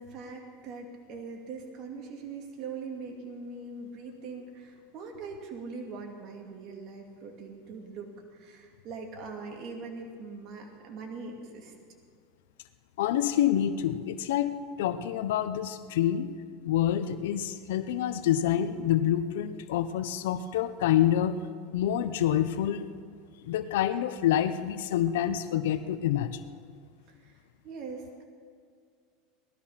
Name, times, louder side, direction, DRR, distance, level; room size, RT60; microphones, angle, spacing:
voice 1, 0.0-11.7 27.1-27.3 27.6-28.3, right 4 dB, 45° right, 1 dB, 2.4 m, -42 dB
voice 2, 13.0-16.3 16.7-21.4 21.7-22.9 23.4-26.4, left 11 dB, 80° left, 11 dB, 0.7 m, -27 dB
18.5 x 13.0 x 5.8 m, 2.2 s
supercardioid pair, 135°, 0 cm